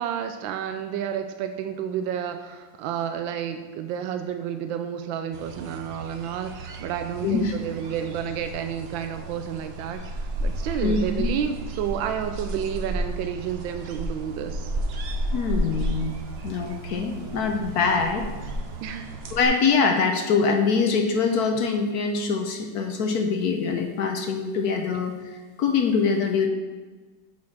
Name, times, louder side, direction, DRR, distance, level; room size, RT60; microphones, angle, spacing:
voice 1, 0.0-10.0 10.4-14.7 18.8-19.2 24.9-25.0, right 9 dB, 85° right, 8 dB, 1.3 m, -30 dB
sound 1, 5.3-19.4, right 1 dB, 65° right, 0.6 m, -32 dB
voice 2, 7.2-7.5 10.8-11.3 15.3-16.1 16.4-18.3 19.3-26.5, left 5 dB, 65° left, 4 dB, 1.1 m, -24 dB
6.4 x 6.0 x 5.9 m, 1.3 s
omnidirectional pair, 2.0 m